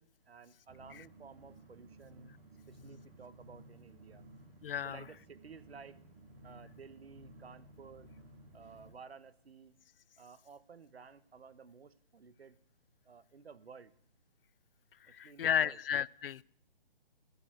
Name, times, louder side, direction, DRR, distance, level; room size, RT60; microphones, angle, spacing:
voice 1, 0.0-2.3 2.7-4.2 4.8-6.0 6.4-8.1 8.5-9.8 10.2-12.6 13.0-13.9 15.1-15.8, right 5 dB, 80° right, 1.2 m, -54 dB
sound 1, 0.7-8.9, right 1 dB, 30° right, 3.4 m, -56 dB
voice 2, 4.6-5.0 15.1-16.4, left 9 dB, 65° left, 0.4 m, -33 dB
15.0 x 7.1 x 8.8 m
hypercardioid pair, 150°, 30 cm